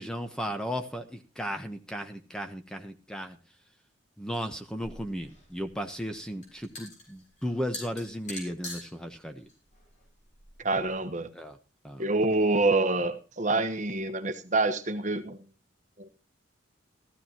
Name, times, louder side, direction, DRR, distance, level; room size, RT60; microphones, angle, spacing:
voice 1, 0.0-3.4 4.2-9.5 11.3-11.6 11.8-12.0, equal, 5° left, 6 dB, 1.0 m, -35 dB
sound 1, 4.8-10.9, left 2 dB, 35° left, 7.0 m, -45 dB
voice 2, 10.6-11.3 12.0-15.4 16.0-16.1, right 2 dB, 35° right, 8 dB, 1.2 m, -26 dB
16.0 x 14.0 x 2.9 m, 0.32 s
head